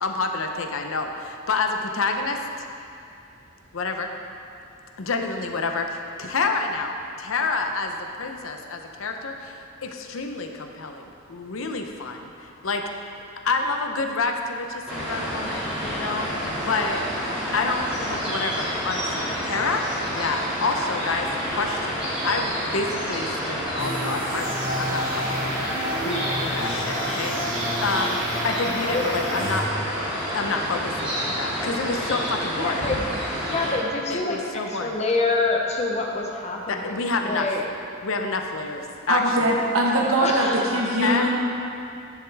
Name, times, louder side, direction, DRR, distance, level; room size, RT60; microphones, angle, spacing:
voice 1, 0.0-2.4 3.7-4.1 5.0-12.8 13.4-16.3 16.7-17.0 17.5-19.8 20.1-29.6 30.3-32.8 34.1-34.9 36.7-37.5 38.0-39.6 41.0-41.3, left 3 dB, 75° left, 4 dB, 0.7 m, -28 dB
sound 1, 14.9-33.7, equal, 5° right, 2.2 m, -29 dB
sound 2, 23.8-29.6, equal, 40° right, 1.1 m, -31 dB
voice 2, 28.8-29.5 32.6-33.1 33.4-37.0 37.2-37.6 40.2-41.3, left 3 dB, 30° left, 0 dB, 0.8 m, -27 dB
voice 3, 39.1-41.4, right 1 dB, 75° right, -2 dB, 1.1 m, -22 dB
10.0 x 7.1 x 3.5 m, 2.6 s
head